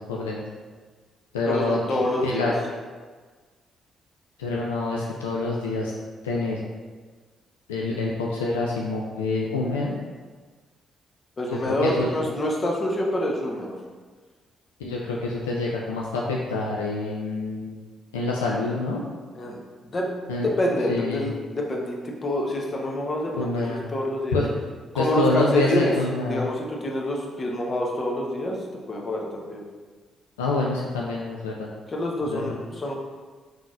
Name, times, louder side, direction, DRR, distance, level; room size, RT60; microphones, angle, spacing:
voice 1, 0.1-0.4 1.3-2.5 4.4-5.9 6.2-6.6 7.7-10.0 11.5-12.1 14.8-17.8 18.1-19.0 20.3-20.5 20.9-21.3 23.3-23.8 24.3-24.5 24.9-26.4 30.4-31.7 32.3-32.6, left 3 dB, 80° left, -3 dB, 0.3 m, -27 dB
voice 2, 1.5-2.5 11.4-13.8 19.3-20.1 20.4-24.4 24.9-25.9 26.3-28.6 28.9-29.6 31.9-32.9, left 1 dB, 40° left, -1 dB, 0.9 m, -27 dB
4.7 x 3.7 x 2.5 m, 1.4 s
figure-of-eight pair, 40°, 0 cm